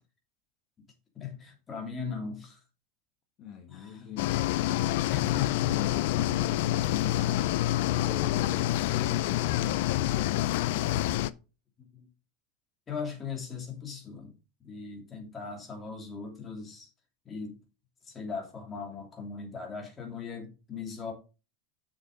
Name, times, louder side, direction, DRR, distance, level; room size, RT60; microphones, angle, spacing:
voice 1, 1.1-2.6 3.7-4.2 4.6-5.8 11.8-12.1 12.9-14.3 14.6-16.9 17.2-17.6 18.0-21.1, left 6 dB, 20° left, 2.9 m, -39 dB
voice 2, 3.4-4.4 5.1-11.1, left 8 dB, 40° left, 1.3 m, -43 dB
sound 1, 4.2-11.3, left 14 dB, 70° left, 0.5 m, -27 dB
7.2 x 6.9 x 3.9 m
supercardioid pair, 150°, 0 cm